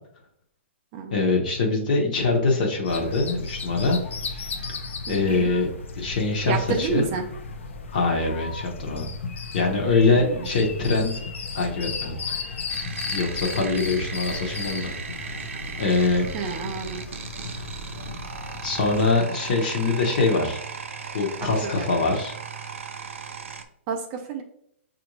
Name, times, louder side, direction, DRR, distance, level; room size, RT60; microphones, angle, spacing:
voice 1, 1.1-4.0 4.3-4.5 5.1-5.7 6.0-7.1 7.9-9.1 9.5-11.1 11.5-12.6 13.1-14.9 15.2-15.3 15.8-16.3 18.6-20.6 21.1-22.3, left 3 dB, 40° left, 0 dB, 0.7 m, -23 dB
sound 1, 2.8-19.1, left 4 dB, 80° left, 0.6 m, -35 dB
voice 2, 5.1-5.5 6.5-7.2 10.1-10.5 16.3-17.0 21.4-21.8 23.9-24.4, right 5 dB, 20° right, 4 dB, 0.3 m, -30 dB
sound 2, 12.7-23.6, right 5 dB, 90° right, 0.6 m, -37 dB
6.0 x 2.5 x 3.0 m, 0.71 s
hypercardioid pair, 175°, 7 cm